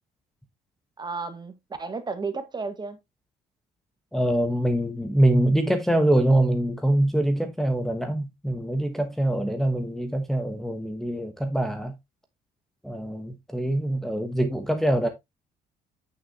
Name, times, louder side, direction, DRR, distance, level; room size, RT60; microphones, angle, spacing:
voice 1, 1.0-3.0, right 4 dB, 25° right, 1.5 m, -33 dB
voice 2, 4.1-11.9 12.8-15.1, right 1 dB, ahead, 1.1 m, -24 dB
8.8 x 6.5 x 2.8 m
cardioid pair, 110°, 17 cm